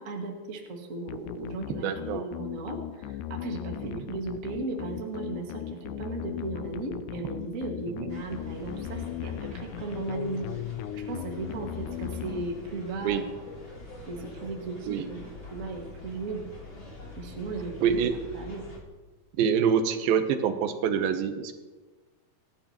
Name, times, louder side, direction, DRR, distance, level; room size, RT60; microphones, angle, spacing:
voice 1, 0.0-3.8 4.1-10.5 10.9-13.3 14.1-15.2 15.5-16.4 17.2-18.0 18.3-18.6, right 3 dB, 35° right, 0 dB, 1.5 m, -36 dB
sound 1, 1.1-12.9, left 12 dB, 80° left, 1.9 m, -38 dB
voice 2, 1.8-2.3 3.8-4.0 8.0-8.1 13.0-13.2 14.9-15.1 17.8-18.1 19.4-21.5, right 7 dB, 85° right, 8 dB, 2.7 m, -26 dB
sound 2, 8.1-18.8, left 1 dB, 35° left, 3.5 m, -45 dB
26.5 x 11.0 x 2.9 m, 1.3 s
omnidirectional pair, 4.1 m